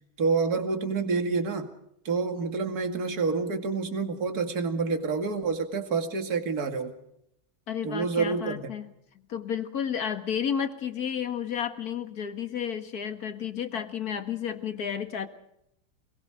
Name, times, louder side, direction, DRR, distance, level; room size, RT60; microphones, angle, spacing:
voice 1, 0.2-1.7 2.0-7.0 7.8-8.6, right 4 dB, 45° right, 5 dB, 2.7 m, -28 dB
voice 2, 7.7-15.3, left 8 dB, 50° left, 8 dB, 2.1 m, -32 dB
28.5 x 22.0 x 5.0 m, 0.77 s
omnidirectional pair, 2.2 m